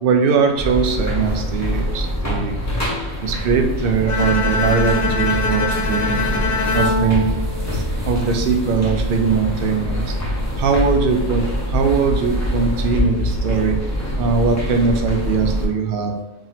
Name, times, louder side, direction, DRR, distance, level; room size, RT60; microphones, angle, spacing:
voice 1, 0.0-2.6 3.2-6.2 6.7-7.3 7.7-10.0 10.6-11.4 11.7-13.8 14.2-16.1, right 5 dB, 60° right, 4 dB, 0.6 m, -20 dB
sound 1, 0.6-15.7, equal, 15° left, 0.6 m, -24 dB
Bowed string instrument, 4.1-8.2, left 3 dB, 85° left, 1.0 m, -23 dB
2.9 x 2.9 x 4.0 m, 0.91 s
omnidirectional pair, 1.4 m